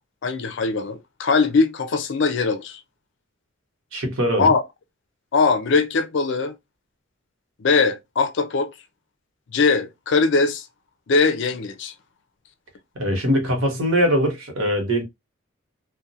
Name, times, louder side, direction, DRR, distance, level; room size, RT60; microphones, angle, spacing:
voice 1, 0.2-2.8 4.4-4.6 5.3-6.6 7.6-8.7 9.5-10.6 11.1-11.9, left 4 dB, 60° left, 0.4 m, -21 dB
voice 2, 3.9-4.5 12.9-15.0, equal, 70° right, 1.0 m, -21 dB
2.4 x 2.1 x 2.6 m
head